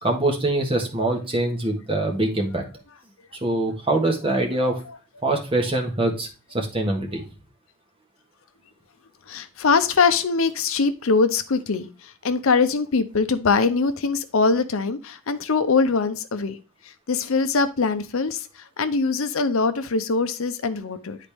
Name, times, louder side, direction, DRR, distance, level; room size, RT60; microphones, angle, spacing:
voice 1, 0.0-2.6 3.4-4.8 5.2-6.3 6.5-7.2, right 2 dB, 25° right, 1.5 m, -23 dB
voice 2, 4.5-5.0 9.3-16.6 16.8-21.2, left 4 dB, 65° left, 0.6 m, -23 dB
10.5 x 4.1 x 3.4 m
head